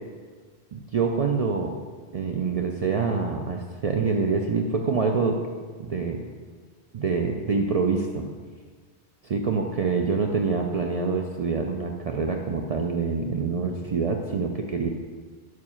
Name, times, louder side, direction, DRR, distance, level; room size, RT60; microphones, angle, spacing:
voice 1, 0.7-1.8 2.1-5.4 5.8-6.3 6.9-8.3 9.2-14.9, right 4 dB, 60° right, 2 dB, 0.4 m, -26 dB
4.9 x 4.8 x 5.6 m, 1.5 s
omnidirectional pair, 1.1 m